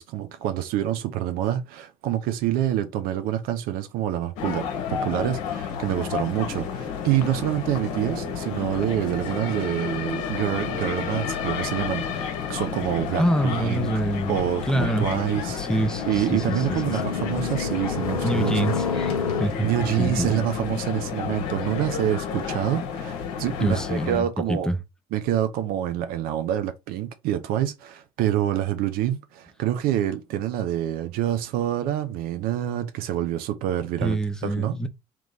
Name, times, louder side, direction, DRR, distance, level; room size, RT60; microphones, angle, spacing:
voice 1, 0.0-13.9 14.3-18.7 19.6-24.7 25.1-34.2 34.4-34.8, right 11 dB, 55° right, 0.5 m, -27 dB
sound 1, 4.4-24.2, left 7 dB, 65° left, 0.8 m, -31 dB
sound 2, 7.5-12.4, right 4 dB, 25° right, 1.5 m, -41 dB
sound 3, 12.0-19.5, left 5 dB, 85° left, 0.5 m, -32 dB
voice 2, 13.2-15.1 15.6-17.0 18.2-19.1 19.4-19.7 20.0-20.5 23.6-24.8 34.0-34.9, right 1 dB, 5° left, 0.7 m, -26 dB
3.0 x 3.0 x 3.9 m
figure-of-eight pair, 50°, 18 cm